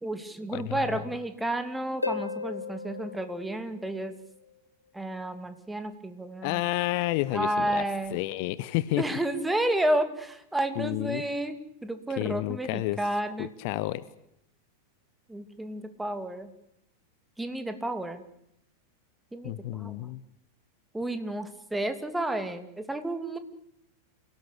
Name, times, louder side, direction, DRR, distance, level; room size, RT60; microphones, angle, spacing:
voice 1, 0.0-4.1 4.9-6.6 7.3-8.2 9.0-11.5 11.8-13.5 15.3-16.5 17.4-18.2 19.3-20.1 20.9-23.4, right 1 dB, 5° right, 9 dB, 2.7 m, -31 dB
voice 2, 0.5-1.0 6.4-7.8 8.1-9.0 10.8-11.2 12.2-13.0 13.4-14.0 19.4-20.2, left 17 dB, 45° left, 17 dB, 1.0 m, -30 dB
Harp, 2.0-4.5 8.0-8.1, left 4 dB, 85° left, 2.0 m, -36 dB
27.5 x 18.0 x 8.5 m, 0.79 s
figure-of-eight pair, 90°, 0 cm